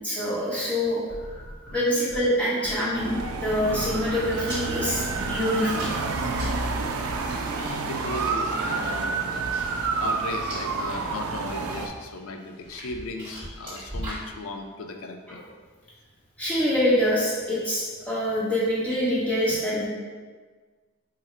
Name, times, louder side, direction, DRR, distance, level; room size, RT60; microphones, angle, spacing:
voice 1, 0.0-1.0 1.7-5.9 16.4-19.9, equal, 5° left, -8 dB, 0.9 m, -25 dB
sound 1, 1.1-2.3 2.6-2.9 3.2-7.9, equal, 40° left, 1.0 m, -41 dB
sound 2, 2.9-11.9, right 4 dB, 90° right, 0.4 m, -29 dB
sound 3, 4.3-11.0 11.4-11.9 12.4-14.3, right 1 dB, 20° right, 1.2 m, -40 dB
voice 2, 6.9-9.7 10.0-15.4, left 2 dB, 80° left, 5 dB, 0.4 m, -37 dB
3.7 x 2.1 x 4.3 m, 1.4 s
head